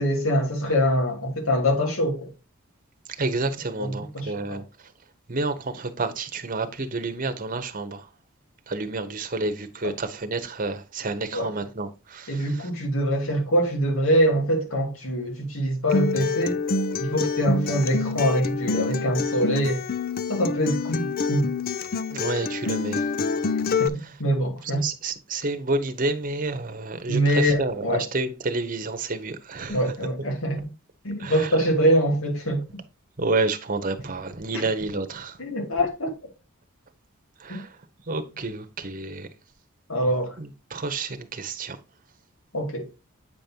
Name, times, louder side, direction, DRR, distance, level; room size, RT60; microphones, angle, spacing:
voice 1, 0.0-2.3 3.8-4.6 11.3-11.5 12.3-16.6 17.0-19.8 20.3-21.5 23.8-24.8 27.1-28.0 29.7-30.7 31.0-32.6 35.4-36.1 37.5-37.6 39.9-40.3 42.5-42.9, equal, 75° left, 2.6 m, -24 dB
voice 2, 3.1-4.9 5.3-8.1 8.7-12.7 22.1-23.1 24.0-24.2 24.6-29.8 31.2-31.6 33.2-35.4 37.4-37.8 38.1-39.3 40.4-41.8, right 3 dB, 40° right, 1.0 m, -29 dB
Acoustic guitar, 15.9-23.9, left 4 dB, 45° left, 0.5 m, -27 dB
8.6 x 5.3 x 2.9 m
head